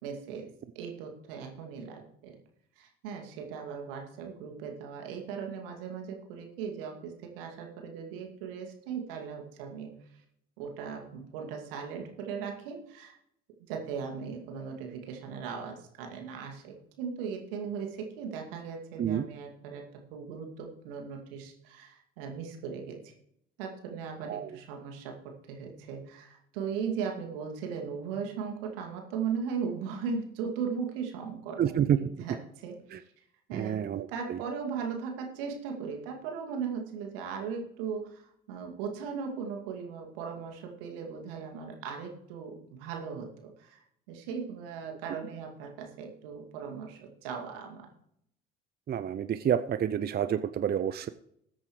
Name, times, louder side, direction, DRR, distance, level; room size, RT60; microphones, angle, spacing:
voice 1, 0.0-0.5 0.7-2.4 2.8-9.9 10.6-13.2 13.7-19.9 20.1-23.1 23.6-31.6 32.0-33.0 33.5-33.8 34.1-47.9, right 6 dB, 70° right, 2 dB, 2.4 m, -38 dB
voice 2, 31.6-32.0 32.9-33.0 33.5-34.4 48.9-51.1, right 9 dB, 35° right, 12 dB, 0.6 m, -29 dB
20.5 x 8.2 x 3.2 m, 0.74 s
figure-of-eight pair, 55°, 29 cm